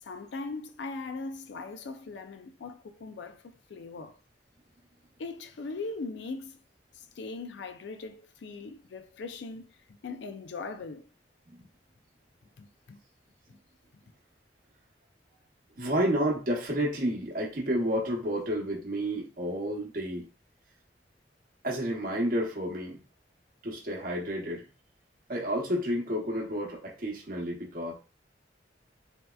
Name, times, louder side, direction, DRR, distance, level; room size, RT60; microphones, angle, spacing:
voice 1, 0.0-3.4 3.7-4.2 5.2-6.6 6.9-11.1 12.6-13.0 13.5-13.6, left 3 dB, 80° left, 0.4 m, -40 dB
voice 2, 15.7-20.2 21.6-23.0 23.6-24.7 25.3-27.9, equal, 50° right, 0.8 m, -30 dB
3.3 x 2.8 x 2.3 m
head